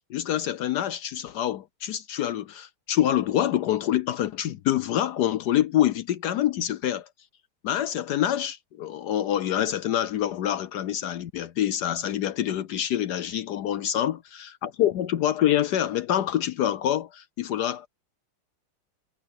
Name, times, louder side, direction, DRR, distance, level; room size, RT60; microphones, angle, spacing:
voice 1, 0.0-7.1 7.6-17.9, left 11 dB, 70° left, 1.0 m, -26 dB
omnidirectional pair, 2.3 m